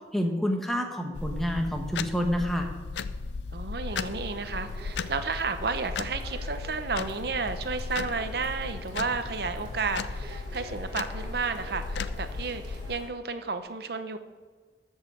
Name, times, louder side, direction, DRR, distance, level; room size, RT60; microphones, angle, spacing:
voice 1, 0.1-2.7, equal, ahead, 3 dB, 1.1 m, -28 dB
sound 1, 1.1-13.0, left 4 dB, 75° left, 0.5 m, -36 dB
voice 2, 3.5-14.2, right 4 dB, 60° right, 9 dB, 0.8 m, -32 dB
sound 2, 3.9-13.1, right 1 dB, 25° right, 3.1 m, -47 dB
13.5 x 5.6 x 6.2 m, 1.5 s
head